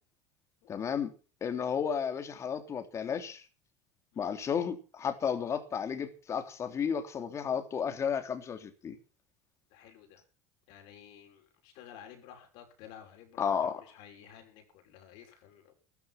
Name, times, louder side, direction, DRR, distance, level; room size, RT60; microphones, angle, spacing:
voice 1, 0.7-1.1 1.4-3.4 4.2-8.9 13.4-13.8, left 7 dB, 35° left, 3.3 m, -33 dB
voice 2, 9.7-10.2 10.7-15.8, left 9 dB, 65° left, 6.1 m, -53 dB
14.5 x 14.0 x 5.9 m
hypercardioid pair, 85°, 8 cm